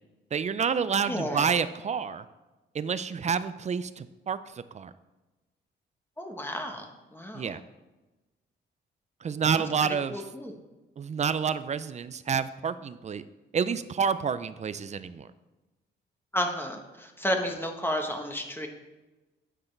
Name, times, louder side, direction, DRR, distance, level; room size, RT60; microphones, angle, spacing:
voice 1, 0.3-2.2 2.7-4.9 7.3-7.6 9.2-10.2 11.0-13.2 13.5-15.3, right 6 dB, 35° right, 14 dB, 0.5 m, -29 dB
voice 2, 1.1-1.5 6.2-7.5 9.5-10.6 16.3-18.7, equal, 10° left, 3 dB, 1.1 m, -32 dB
9.7 x 6.7 x 3.3 m, 1.1 s
cardioid pair, 85°, 20 cm